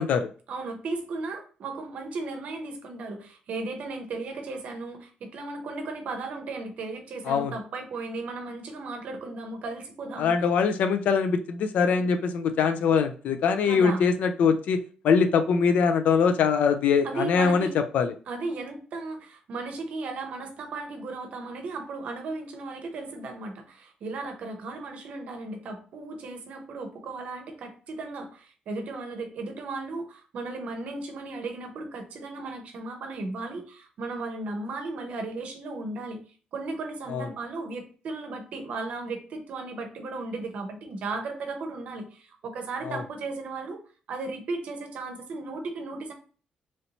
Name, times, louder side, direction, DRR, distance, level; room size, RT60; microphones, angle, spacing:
voice 1, 0.5-10.3 11.9-12.1 13.6-14.1 17.0-17.8 18.3-36.2 36.5-43.8 44.1-46.1, right 3 dB, 55° right, 5 dB, 0.7 m, -35 dB
voice 2, 10.2-17.7 17.9-18.1 37.1-37.3 42.9-43.0, left 6 dB, 60° left, 8 dB, 0.3 m, -23 dB
3.1 x 2.7 x 2.8 m, 0.39 s
cardioid pair, 175°, 3 cm